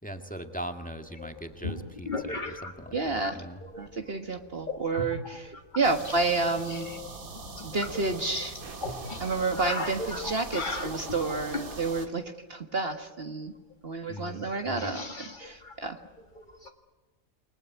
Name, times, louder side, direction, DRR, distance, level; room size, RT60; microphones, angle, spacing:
voice 1, 0.0-3.6 14.1-14.9, equal, 5° left, 5 dB, 2.0 m, -40 dB
sound 1, 1.2-3.3 3.6-4.1 4.6-6.2 6.5-11.7 13.4-13.5 13.7-13.8 14.2-16.7, left 2 dB, 35° left, 2.1 m, -37 dB
voice 2, 2.9-3.4 3.8-6.9 7.6-8.6 9.2-13.5 13.8-16.0, right 3 dB, 45° right, 6 dB, 1.7 m, -30 dB
sound 2, 5.8-12.1, right 3 dB, 85° right, 2.7 m, -42 dB
29.0 x 20.5 x 9.5 m, 1.3 s
omnidirectional pair, 1.4 m